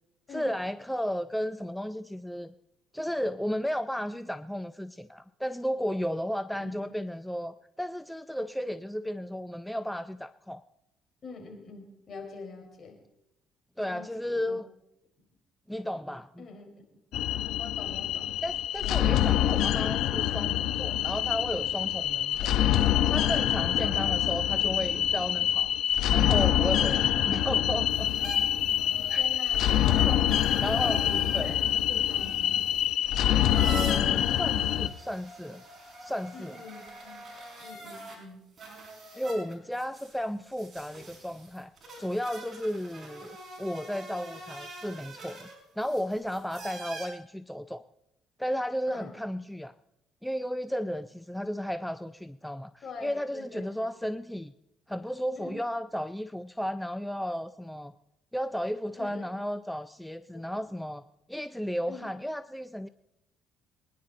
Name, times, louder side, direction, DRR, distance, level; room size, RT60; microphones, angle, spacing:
voice 1, 0.3-2.5 2.9-10.6 13.8-14.7 15.7-16.5 18.4-22.5 23.1-25.7 26.1-28.3 29.1-29.2 29.6-31.0 31.3-31.5 33.6-35.6 36.0-36.6 39.1-41.7 42.0-45.5 45.8-47.8 48.4-49.7 50.2-54.5 54.9-57.9 58.3-61.0 61.3-62.9, equal, 5° left, 11 dB, 0.5 m, -34 dB
voice 2, 6.5-7.0 11.2-13.0 13.8-14.6 16.4-16.7 17.6-18.3 18.8-19.5 23.8-24.2 29.2-30.3 30.7-32.6 36.3-37.2 37.6-38.4 39.1-39.4 48.9-49.4 52.8-53.9 55.4-55.6 59.0-59.3 60.5-60.6 61.9-62.1, left 4 dB, 50° left, 2 dB, 4.2 m, -44 dB
sound 1, 17.1-34.9, left 11 dB, 75° left, 0.7 m, -26 dB
sound 2, 27.9-38.2 38.6-47.1, right 2 dB, 35° right, 5.6 m, -45 dB
24.0 x 10.5 x 3.8 m, 0.86 s
cardioid pair, 95°, 0 cm